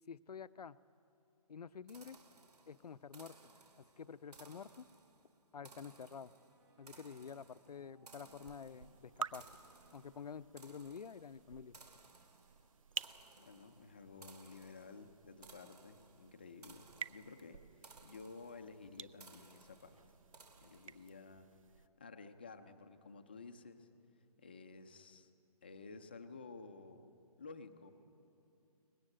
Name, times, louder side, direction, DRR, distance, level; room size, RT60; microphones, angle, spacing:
voice 1, 0.1-0.8 1.5-2.2 2.7-3.3 3.8-4.9 5.5-6.3 6.8-9.5 9.9-11.8, left 6 dB, 80° left, 15 dB, 0.7 m, -49 dB
sound 1, 1.9-21.3, right 4 dB, 80° right, 2.6 m, -62 dB
sound 2, 5.7-10.9, right 3 dB, 45° right, 5.1 m, -70 dB
sound 3, 8.1-21.9, right 6 dB, 60° right, 0.5 m, -51 dB
voice 2, 13.4-20.0 20.6-23.9 24.4-25.3 25.6-27.1 27.4-27.9, left 4 dB, 15° left, 7 dB, 0.5 m, -53 dB
24.0 x 19.5 x 7.8 m, 2.7 s
hypercardioid pair, 175°, 20 cm